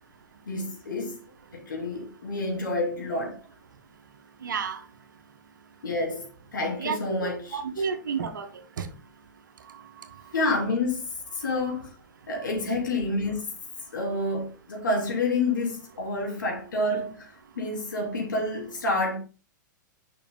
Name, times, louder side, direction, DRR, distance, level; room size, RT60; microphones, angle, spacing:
voice 1, 0.5-1.2 1.5-3.4 5.8-7.6 10.3-11.9 12.3-13.4 13.9-19.2, left 2 dB, 80° left, 3.3 m, -29 dB
voice 2, 4.4-4.8 6.8-8.5 8.8-8.9, right 6 dB, 75° right, 1.3 m, -31 dB
6.9 x 5.8 x 3.7 m
hypercardioid pair, 110°, 10 cm